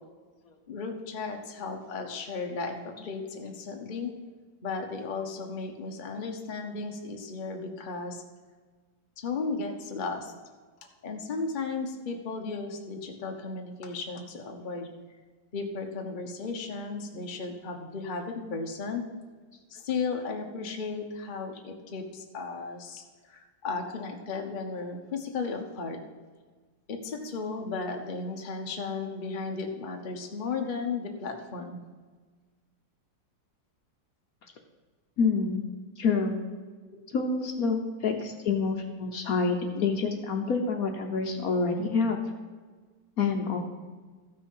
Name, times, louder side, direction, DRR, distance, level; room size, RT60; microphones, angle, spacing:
voice 1, 0.7-4.1 4.6-8.2 9.2-10.3 11.0-14.9 15.5-19.0 19.7-26.0 26.9-31.8 38.1-38.2, left 4 dB, 35° left, 3 dB, 1.0 m, -35 dB
voice 2, 35.2-35.7 36.0-36.4 37.1-42.2 43.2-43.6, left 4 dB, 60° left, 4 dB, 1.2 m, -27 dB
14.0 x 6.1 x 5.5 m, 1.4 s
omnidirectional pair, 1.9 m